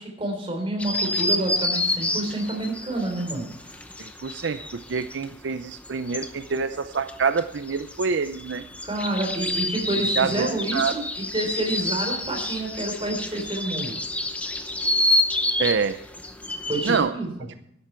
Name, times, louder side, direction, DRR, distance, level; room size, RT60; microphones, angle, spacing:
voice 1, 0.0-3.5 8.8-14.0 16.7-17.3, right 1 dB, 30° right, 2 dB, 3.6 m, -28 dB
sound 1, 0.8-5.3 5.6-17.0, left 1 dB, 5° left, 0.8 m, -28 dB
voice 2, 4.0-8.7 10.2-10.9 15.6-16.0 16.8-17.1, right 5 dB, 70° right, 11 dB, 0.5 m, -26 dB
13.5 x 11.0 x 4.5 m, 0.81 s
head